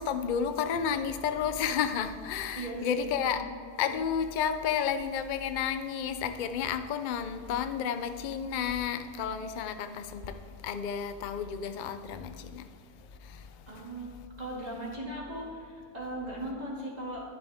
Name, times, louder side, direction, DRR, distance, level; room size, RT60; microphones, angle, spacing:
voice 1, 0.0-3.4 3.8-12.7 13.2-13.7, left 7 dB, 90° left, 9 dB, 0.4 m, -31 dB
voice 2, 2.6-3.3 13.7-14.1 14.4-17.2, right 1 dB, 25° right, -5 dB, 2.5 m, -38 dB
10.5 x 10.5 x 3.6 m, 2.3 s
omnidirectional pair, 1.6 m